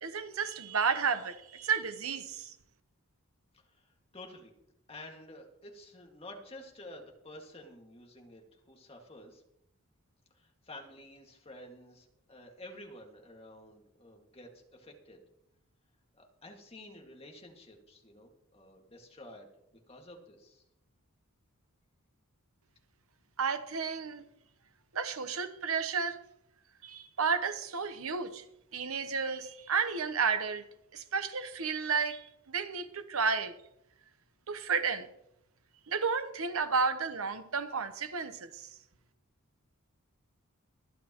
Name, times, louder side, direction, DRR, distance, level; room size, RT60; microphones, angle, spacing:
voice 1, 0.0-2.5 23.4-24.2 24.9-26.2 26.8-28.4 28.7-30.6 30.9-33.5 34.5-35.1 35.9-38.7, right 5 dB, 70° right, 1.0 m, -32 dB
voice 2, 3.5-4.5 4.9-9.4 10.3-15.2 16.2-20.6, left 1 dB, 25° left, 2.0 m, -51 dB
24.5 x 8.5 x 3.0 m
head